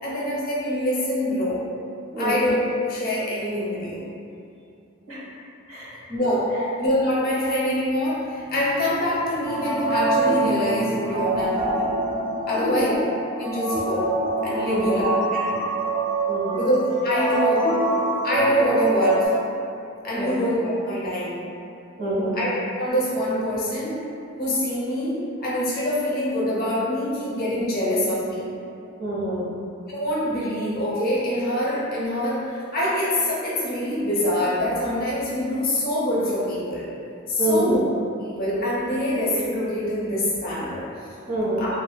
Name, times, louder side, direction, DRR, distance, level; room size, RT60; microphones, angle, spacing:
voice 1, 0.0-1.6 2.2-4.0 6.1-6.5 6.8-11.9 12.5-12.9 13.4-14.1 14.4-15.6 16.5-17.8 18.2-19.3 20.0-21.4 22.4-22.5 22.8-24.0 24.4-28.5 29.9-36.9 37.3-37.8 38.3-40.8 41.6-41.7, left 1 dB, 45° left, -7 dB, 0.5 m, -25 dB
voice 2, 2.1-2.4 5.1-5.2 5.7-5.9 6.5-6.6 12.5-13.0 14.6-15.0 16.3-16.6 20.1-20.4 22.0-22.4 29.0-29.5 37.4-37.8 41.3-41.7, right 1 dB, 85° right, -9 dB, 1.0 m, -26 dB
sound 1, 9.4-19.3, right 2 dB, 10° right, 0.4 m, -25 dB
2.6 x 2.1 x 2.2 m, 2.6 s
head